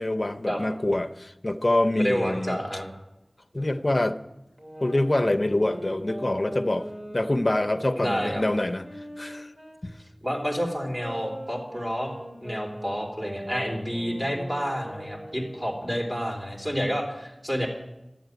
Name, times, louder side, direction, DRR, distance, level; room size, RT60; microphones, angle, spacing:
voice 1, 0.0-2.6 3.5-4.2 4.8-6.9 7.1-8.8 9.2-9.5 9.8-9.9, left 1 dB, 40° left, 0.7 m, -25 dB
voice 2, 2.0-2.9 3.5-3.7 8.0-8.4 10.2-12.1 12.4-17.7, equal, 25° right, 3.5 m, -29 dB
sound 1, 4.6-9.8 10.3-15.9, right 1 dB, 40° right, 2.4 m, -40 dB
11.5 x 7.9 x 9.3 m
wide cardioid pair, 45°, 0 cm